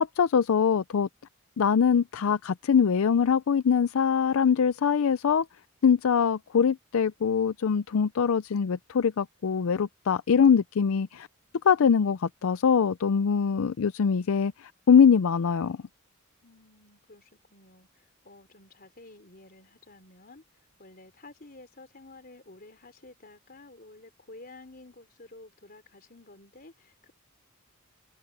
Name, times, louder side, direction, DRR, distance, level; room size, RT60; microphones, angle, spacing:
voice 1, 0.2-1.1 1.6-5.4 5.8-11.3 11.6-15.8, left 6 dB, 75° left, 0.4 m, -23 dB
voice 2, 16.4-20.4 20.8-27.1, left 2 dB, 45° left, 3.8 m, -51 dB
head